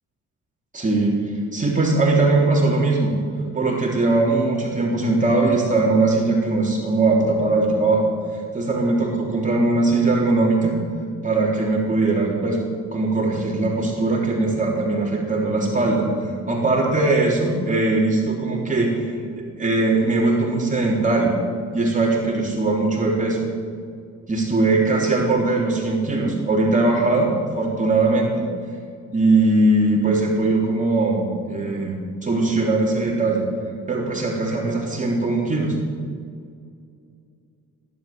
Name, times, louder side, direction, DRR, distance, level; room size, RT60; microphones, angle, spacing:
voice 1, 0.7-1.1 1.5-3.1 3.5-8.1 8.5-10.7 11.2-12.6 12.9-16.1 16.5-21.4 21.7-23.4 24.3-28.3 29.1-33.5 33.9-35.8, right 2 dB, 25° right, -3 dB, 3.6 m, -20 dB
17.0 x 11.0 x 7.7 m, 2.3 s
cardioid pair, 90°, 30 cm